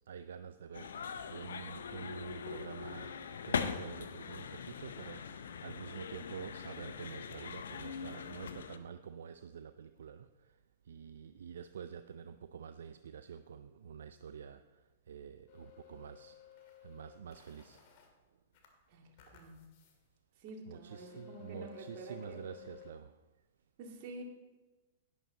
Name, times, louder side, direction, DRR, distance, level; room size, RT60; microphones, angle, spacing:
voice 1, 0.0-3.2 3.4-10.5 10.9-16.4 16.8-17.8 20.7-23.2, right 7 dB, 70° right, 11 dB, 0.4 m, -48 dB
sound 1, 0.7-8.8, left 6 dB, 75° left, 0.6 m, -41 dB
sound 2, 15.5-18.1 18.5-20.0 20.4-20.5 20.9-22.9, left 12 dB, 50° left, 2.0 m, -56 dB
voice 2, 18.9-19.6 20.4-22.6 23.8-24.2, right 2 dB, 50° right, 1 dB, 2.2 m, -49 dB
11.0 x 9.6 x 4.1 m, 1.2 s
hypercardioid pair, 110°, 0 cm